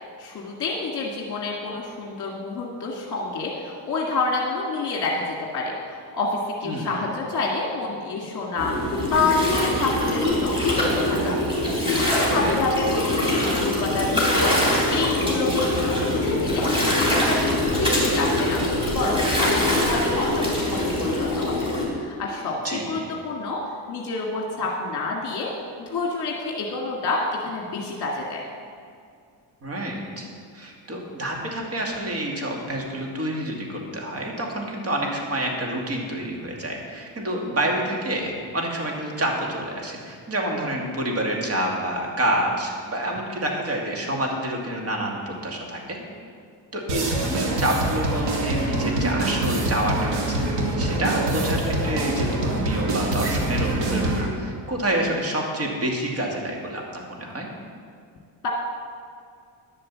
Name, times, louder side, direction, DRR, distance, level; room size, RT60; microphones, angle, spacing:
voice 1, 0.2-5.2 5.5-11.3 11.9-16.7 17.0-18.6 18.9-21.5 22.0-23.6 23.9-25.5 25.8-28.4 58.4-58.5, left 3 dB, 45° left, -2 dB, 1.8 m, -28 dB
voice 2, 6.6-7.0 12.3-12.6 22.6-23.1 29.6-30.3 30.5-46.0 46.7-50.4 50.8-57.5, right 1 dB, 35° right, -1 dB, 2.4 m, -28 dB
Gurgling, 8.6-21.8, left 1 dB, 10° right, 3.6 m, -23 dB
sound 1, 46.9-54.3, right 2 dB, 80° right, 2.3 m, -25 dB
11.0 x 7.6 x 7.4 m, 2.3 s
cardioid pair, 135°, 44 cm